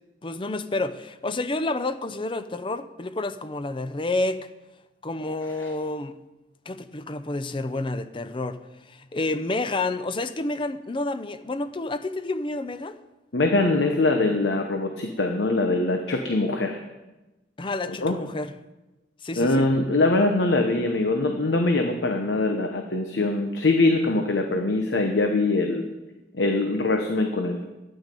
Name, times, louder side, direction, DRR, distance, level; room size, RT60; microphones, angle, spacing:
voice 1, 0.2-4.5 5.0-6.2 6.7-8.6 8.9-13.0 17.6-18.5 19.2-19.7, left 2 dB, 30° left, 0.6 m, -29 dB
voice 2, 13.3-16.8 17.9-18.1 19.4-25.9 26.3-27.7, left 2 dB, 85° left, 1.0 m, -23 dB
12.0 x 9.8 x 5.3 m
head